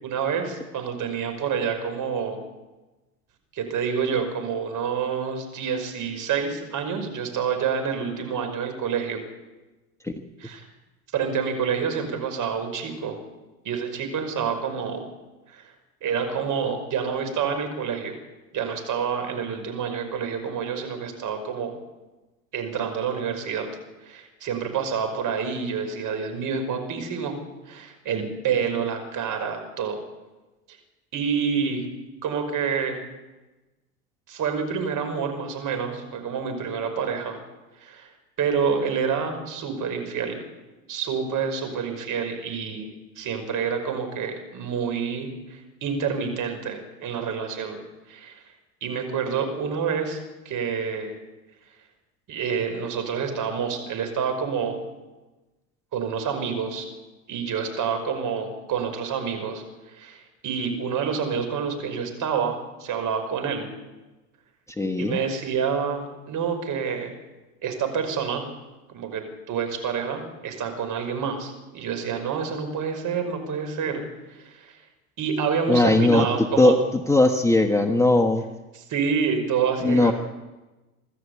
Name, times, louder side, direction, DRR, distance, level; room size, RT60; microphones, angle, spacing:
voice 1, 0.0-2.4 3.5-9.2 10.4-10.7 11.1-13.2 13.6-15.0 15.5-15.6 16.0-18.1 18.5-21.7 22.5-23.7 24.0-27.4 27.7-30.0 31.1-31.9 32.2-33.0 34.3-37.4 37.8-38.1 38.4-40.4 40.9-42.9 43.2-47.8 48.1-48.4 48.8-51.2 52.3-54.8 55.9-56.9 57.3-63.7 65.0-67.1 67.6-68.4 68.9-74.0 74.3-74.7 75.2-76.7 78.7-80.1, right 6 dB, 45° right, 5 dB, 5.6 m, -28 dB
voice 2, 64.8-65.2 75.7-76.8 77.1-78.4 79.8-80.1, left 2 dB, 5° left, 4 dB, 1.4 m, -19 dB
25.5 x 12.5 x 8.4 m, 1.1 s
hypercardioid pair, 90°, 44 cm